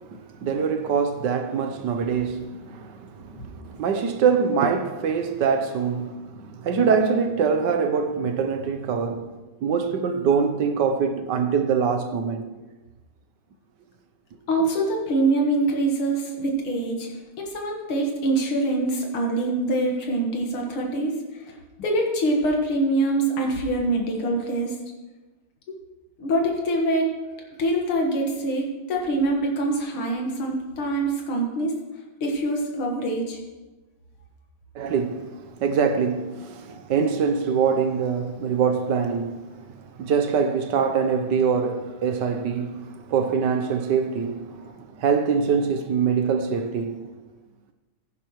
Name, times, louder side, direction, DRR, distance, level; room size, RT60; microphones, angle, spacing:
voice 1, 0.1-12.5 34.7-39.5 40.0-47.1, right 6 dB, 65° right, 1.3 m, -24 dB
voice 2, 14.5-17.1 17.4-21.1 21.5-21.6 21.8-24.7 26.2-27.1 27.6-31.7 32.2-33.4, right 2 dB, 85° left, 2.4 m, -24 dB
15.0 x 10.0 x 3.1 m
omnidirectional pair, 2.3 m